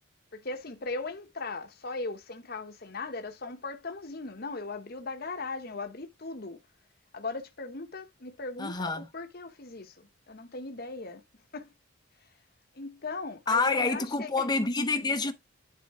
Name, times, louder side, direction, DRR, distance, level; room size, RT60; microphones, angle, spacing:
voice 1, 0.3-6.6 7.1-11.2 11.5-11.7 12.7-14.5, left 3 dB, 45° left, 1.0 m, -38 dB
voice 2, 8.6-9.1 13.5-15.3, left 3 dB, 20° left, 0.8 m, -27 dB
10.5 x 3.7 x 3.6 m
head